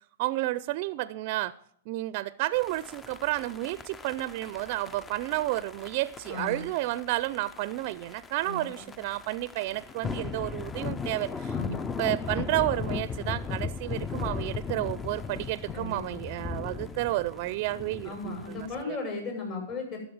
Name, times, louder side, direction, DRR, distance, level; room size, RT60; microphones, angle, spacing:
voice 1, 0.2-1.5 1.9-11.5 12.0-19.0, right 17 dB, 50° right, 17 dB, 0.4 m, -31 dB
sound 1, 2.5-18.8, left 5 dB, 15° left, 0.5 m, -37 dB
voice 2, 6.2-6.6 8.4-8.9 11.5-11.9 15.7-16.2 18.0-20.0, left 3 dB, 45° left, 1 dB, 6.4 m, -36 dB
12.5 x 6.7 x 7.9 m, 0.64 s
hypercardioid pair, 120°, 0 cm